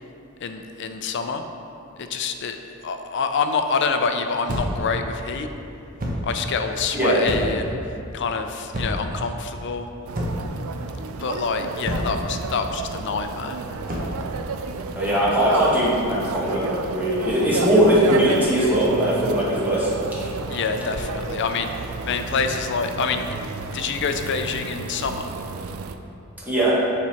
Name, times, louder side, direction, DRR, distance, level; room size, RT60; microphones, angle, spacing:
voice 1, 0.4-1.4 2.0-5.5 6.2-7.8 8.1-9.9 11.2-13.6 20.5-23.4 23.7-25.3, left 5 dB, 60° left, 7 dB, 0.4 m, -26 dB
sound 1, 4.5-4.9 6.0-6.3 7.3-7.7 8.7-9.1 10.1-10.6 11.9-12.2 13.9-14.2, equal, 40° right, 0.9 m, -28 dB
voice 2, 6.9-7.3 14.9-20.3 26.5-26.8, equal, 10° right, -8 dB, 1.5 m, -20 dB
sound 2, 10.1-26.0, right 4 dB, 80° right, 0.4 m, -31 dB
7.2 x 4.1 x 4.3 m, 2.7 s
head